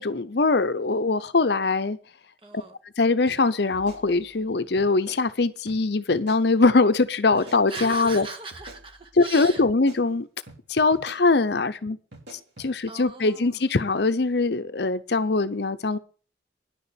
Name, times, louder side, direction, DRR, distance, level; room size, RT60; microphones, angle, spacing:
voice 1, 0.0-2.0 3.0-8.3 9.2-10.3 10.7-12.0 12.3-16.0, left 3 dB, 60° left, 0.7 m, -22 dB
voice 2, 2.4-2.7 7.4-9.6 12.6-13.6, right 3 dB, 30° right, 1.8 m, -39 dB
sound 1, 3.3-3.4 3.7-4.5 4.8-5.2 5.7-5.8 6.1-6.4 7.3-8.2 8.5-9.2 9.6-10.0 10.5-10.6 10.9-11.2 12.1-12.7, right 1 dB, 65° right, 5.7 m, -46 dB
10.5 x 6.9 x 8.5 m
head